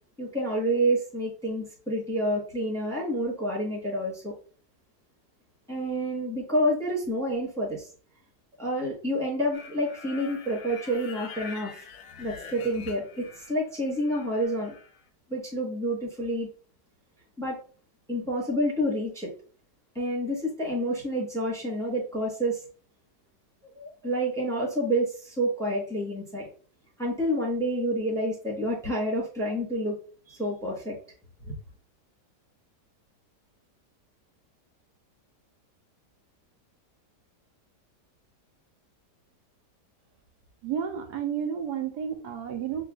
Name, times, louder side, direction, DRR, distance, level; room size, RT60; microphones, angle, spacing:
voice 1, 0.2-4.3 5.7-7.9 8.6-11.9 12.2-14.7 15.3-16.5 17.4-17.6 18.1-19.3 19.9-22.6 23.7-26.5 27.0-30.0 30.3-31.0 31.4-31.5, equal, ahead, -4 dB, 0.9 m, -28 dB
sound 1, 9.5-13.6 13.9-15.0, left 5 dB, 75° left, 1.1 m, -45 dB
voice 2, 40.6-42.8, right 8 dB, 75° right, 5 dB, 1.1 m, -31 dB
6.3 x 2.3 x 2.3 m, 0.41 s
omnidirectional pair, 1.8 m